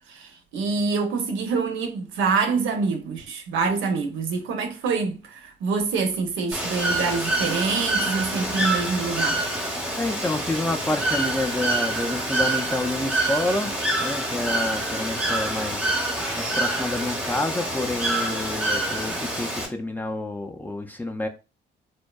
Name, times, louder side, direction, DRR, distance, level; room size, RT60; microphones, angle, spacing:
voice 1, 0.1-9.4, right 4 dB, 85° right, 0.6 m, -26 dB
Bird / Water, 6.5-19.7, right 2 dB, 5° right, 0.7 m, -26 dB
voice 2, 10.0-21.3, left 2 dB, 10° left, 0.3 m, -29 dB
2.6 x 2.2 x 2.2 m
cardioid pair, 90°, 20 cm